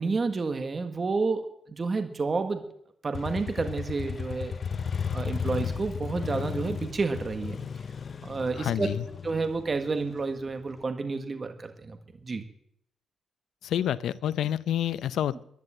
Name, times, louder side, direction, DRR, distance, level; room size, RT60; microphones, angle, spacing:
voice 1, 0.0-2.7 3.0-4.6 5.1-7.6 8.2-8.9 9.2-12.4, right 4 dB, 30° right, 7 dB, 1.6 m, -30 dB
Motorcycle, 3.1-10.8, left 6 dB, 40° left, 0.7 m, -34 dB
voice 2, 8.6-9.1 13.6-15.4, left 10 dB, 80° left, 16 dB, 0.6 m, -28 dB
12.0 x 11.0 x 8.9 m, 0.72 s
cardioid pair, 120°, 0 cm